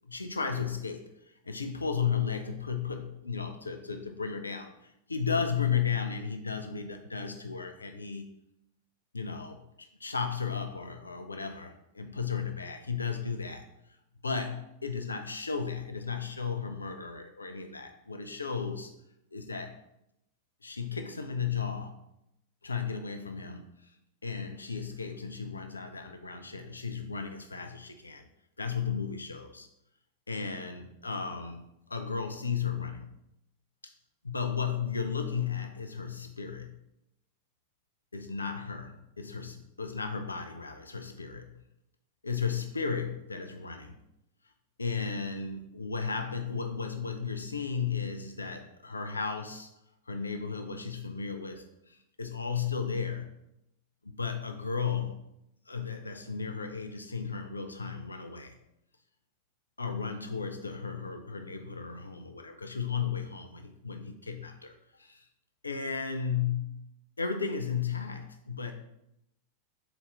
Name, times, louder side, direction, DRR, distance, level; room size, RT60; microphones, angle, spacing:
voice 1, 0.0-1.0 1.4-8.3 9.1-13.7 14.2-18.9 19.3-19.8 20.6-22.0 22.6-23.6 24.2-28.3 28.6-29.7 30.3-33.1 34.2-36.8 38.1-41.5 42.2-44.0 44.8-49.7 50.1-53.4 54.0-55.3 55.7-58.6 59.8-65.2 65.6-66.9 67.2-68.7, left 6 dB, 80° left, 6 dB, 0.4 m, -34 dB
4.1 x 3.9 x 3.3 m, 0.81 s
figure-of-eight pair, 90°, 0 cm